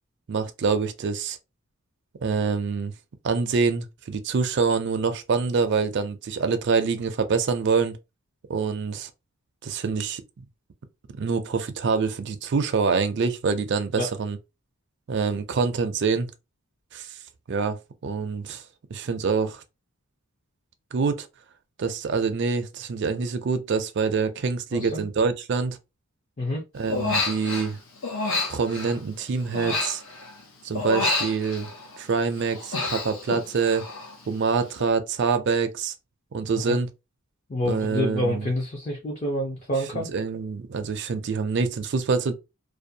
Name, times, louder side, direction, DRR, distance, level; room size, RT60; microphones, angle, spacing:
voice 1, 0.3-1.4 2.2-2.9 3.2-8.0 8.5-9.1 9.6-10.2 11.2-14.4 15.1-16.3 16.9-17.1 17.5-18.6 18.9-19.6 20.9-21.3 21.8-25.8 26.7-27.8 28.5-30.0 30.6-31.7 32.0-33.8 34.3-35.9 36.3-36.9 37.7-38.5 39.9-42.3, right 5 dB, 50° right, 0.4 m, -25 dB
voice 2, 24.7-25.0 26.4-26.6 36.6-36.8 37.5-40.1, left 1 dB, 30° left, 0.5 m, -27 dB
Human voice, 26.9-27.7 28.0-30.4 30.7-32.0 32.4-34.2 34.4-34.8, left 3 dB, 70° left, 0.8 m, -29 dB
2.5 x 2.2 x 2.7 m
head